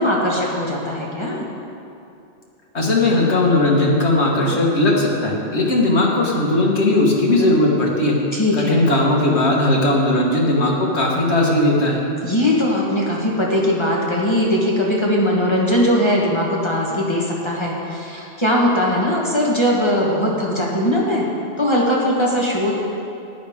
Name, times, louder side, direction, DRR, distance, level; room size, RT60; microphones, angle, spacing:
voice 1, 0.0-1.4 8.3-8.8 12.2-21.2 21.6-22.7, left 1 dB, 25° left, -4 dB, 1.4 m, -20 dB
voice 2, 2.7-8.2 8.5-12.0, left 2 dB, 65° left, -2 dB, 1.9 m, -17 dB
13.5 x 10.5 x 3.6 m, 2.7 s
omnidirectional pair, 1.2 m